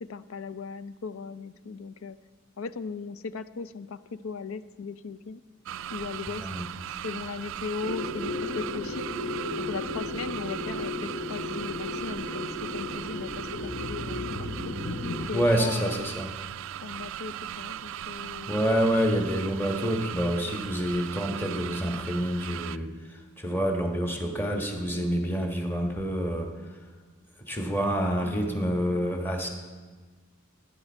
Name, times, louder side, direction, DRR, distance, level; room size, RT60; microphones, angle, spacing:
voice 1, 0.0-2.2 2.6-5.4 5.9-6.5 7.0-9.1 9.6-14.8 15.3-16.1 16.8-18.6, left 5 dB, 65° left, 13 dB, 0.5 m, -38 dB
sound 1, 5.7-22.8, right 11 dB, 60° right, 0.3 m, -38 dB
sound 2, 7.8-15.3, left 2 dB, 35° left, 0.8 m, -34 dB
voice 2, 15.3-16.3 18.5-26.5 27.5-29.5, equal, 10° left, 2 dB, 1.2 m, -27 dB
16.5 x 9.9 x 4.4 m, 1.4 s
head